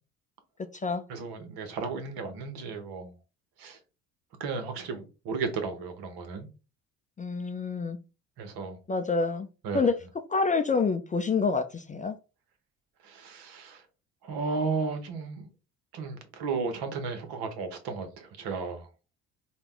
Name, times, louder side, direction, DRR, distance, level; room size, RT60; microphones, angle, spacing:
voice 1, 1.1-3.1 3.6-3.8 4.4-6.5 8.4-8.8 9.6-9.9 13.0-13.8 14.2-15.5 15.9-18.9, right 4 dB, 65° right, 1.2 m, -34 dB
voice 2, 7.2-8.0 8.9-9.5 9.7-10.0 10.3-12.1, left 4 dB, 20° left, 0.4 m, -27 dB
4.1 x 2.3 x 3.7 m
hypercardioid pair, 55°, 41 cm